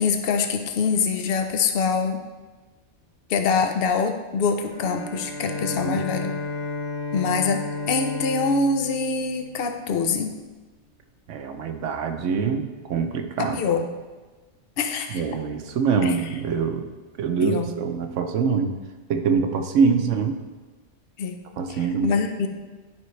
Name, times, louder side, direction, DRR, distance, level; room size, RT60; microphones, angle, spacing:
voice 1, 0.0-2.2 3.3-6.3 7.1-10.3 13.4-13.9 14.8-15.2 16.0-16.1 17.4-17.7 19.9-20.0 21.2-21.4 21.7-22.5, left 5 dB, 60° left, 6 dB, 0.8 m, -24 dB
Bowed string instrument, 4.6-10.2, left 2 dB, 85° left, 2.2 m, -33 dB
voice 2, 11.3-13.6 15.1-16.9 17.2-18.7 19.1-20.4 21.6-22.1, right 5 dB, 85° right, 6 dB, 1.1 m, -24 dB
11.0 x 5.2 x 3.2 m, 1.3 s
omnidirectional pair, 1.2 m